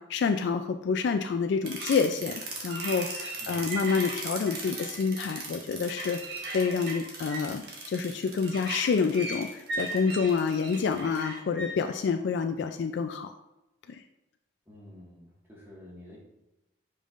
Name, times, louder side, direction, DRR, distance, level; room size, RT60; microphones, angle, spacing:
voice 1, 0.0-6.2 6.5-13.3 13.9-14.0, left 5 dB, 65° left, 7 dB, 0.3 m, -28 dB
sound 1, 1.6-11.7, right 2 dB, 55° right, 1.3 m, -37 dB
voice 2, 3.4-3.8 14.7-16.2, left 1 dB, 10° right, -5 dB, 1.6 m, -50 dB
7.2 x 5.4 x 2.5 m, 0.94 s
head